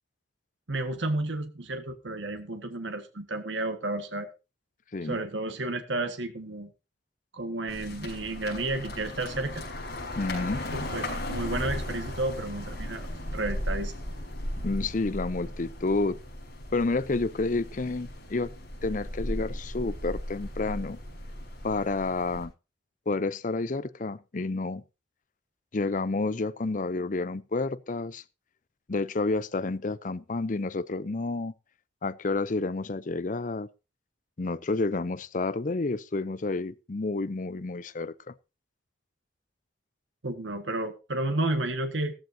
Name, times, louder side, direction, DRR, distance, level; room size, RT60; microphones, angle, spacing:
voice 1, 0.7-4.3 5.0-6.7 7.3-9.6 10.7-13.1 13.3-13.9 40.2-42.1, right 2 dB, 90° right, 1.7 m, -32 dB
sound 1, 7.7-22.5, left 1 dB, 60° left, 5.9 m, -36 dB
voice 2, 10.2-10.7 14.6-16.2 16.7-18.5 18.8-21.0 21.6-22.5 23.1-24.8 25.7-28.2 28.9-31.5 32.0-33.7 34.4-38.3, left 3 dB, 45° left, 0.6 m, -30 dB
14.5 x 14.5 x 2.8 m
head